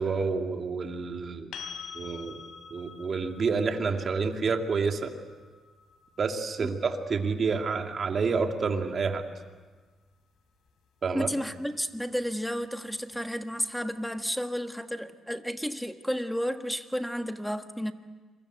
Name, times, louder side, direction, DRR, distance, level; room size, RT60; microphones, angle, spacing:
voice 1, 0.0-1.5 1.9-2.4 2.7-5.1 6.2-9.2 11.0-11.3, right 4 dB, 45° right, 4 dB, 2.6 m, -28 dB
sound 1, 1.5-9.3 12.2-12.3, left 6 dB, 80° left, 4.0 m, -47 dB
voice 2, 11.1-17.9, equal, ahead, 7 dB, 1.5 m, -32 dB
27.5 x 23.0 x 8.1 m, 1.4 s
cardioid pair, 100°, 0 cm